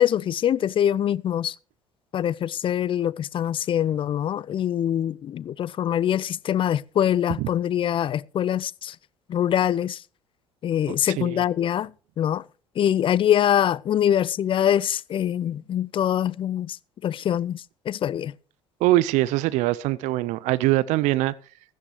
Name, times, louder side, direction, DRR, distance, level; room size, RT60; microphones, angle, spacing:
voice 1, 0.0-1.5 2.1-9.0 9.3-10.0 10.6-11.9 12.2-12.4 12.8-16.8 17.0-18.3, left 10 dB, 40° left, 0.5 m, -24 dB
voice 2, 10.9-11.4 18.8-21.3, right 17 dB, 60° right, 0.6 m, -23 dB
16.0 x 13.5 x 3.2 m
hypercardioid pair, 60°, 14 cm